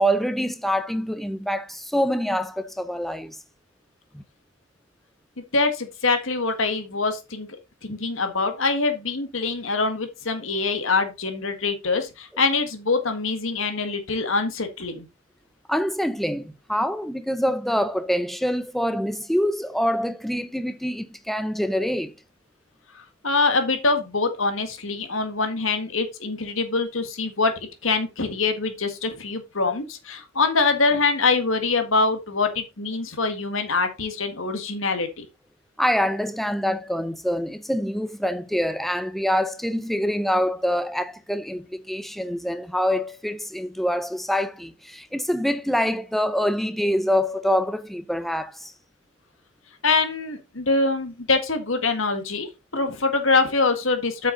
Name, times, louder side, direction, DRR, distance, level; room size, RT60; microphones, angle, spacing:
voice 1, 0.0-3.4 4.1-4.2 15.7-22.1 35.8-48.7, equal, ahead, 0.6 m, -25 dB
voice 2, 5.4-7.6 7.8-15.1 23.0-35.3 49.8-54.3, left 3 dB, 75° left, 1.8 m, -24 dB
8.1 x 6.4 x 4.0 m
head